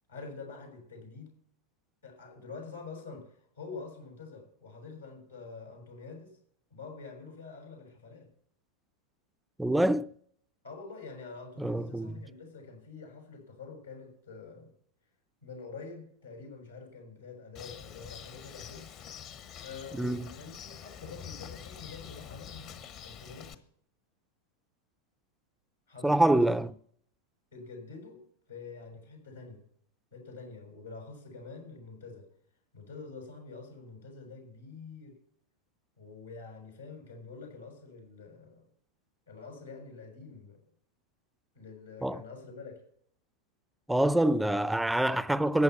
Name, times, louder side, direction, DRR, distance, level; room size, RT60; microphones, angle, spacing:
voice 1, 0.1-1.3 2.0-6.3 6.7-8.3 10.6-14.7 15.4-18.9 19.6-23.6 25.9-26.6 27.5-29.6 30.1-32.3 32.7-35.2 36.0-38.6 39.3-40.6 41.5-42.7, left 4 dB, 80° left, 6.1 m, -46 dB
voice 2, 9.6-10.1 11.6-12.1 19.9-20.2 26.0-26.7 42.0-42.2 43.9-45.6, right 1 dB, 5° right, 0.4 m, -25 dB
Bird, 17.5-23.5, left 9 dB, 40° left, 1.1 m, -46 dB
14.5 x 9.2 x 5.7 m
figure-of-eight pair, 90°, 0 cm